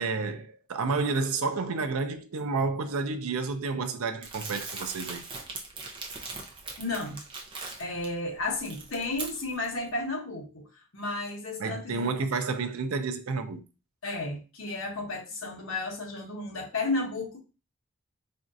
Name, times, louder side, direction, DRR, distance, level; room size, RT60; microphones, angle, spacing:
voice 1, 0.0-5.2 11.6-13.6, right 4 dB, 80° right, 0.5 m, -30 dB
Crumpling crinkling, 4.2-8.1 8.5-9.7, right 3 dB, 25° right, 0.6 m, -40 dB
voice 2, 6.8-7.2 7.8-12.1 14.0-17.4, left 2 dB, 65° left, 1.0 m, -33 dB
4.2 x 2.4 x 2.6 m
head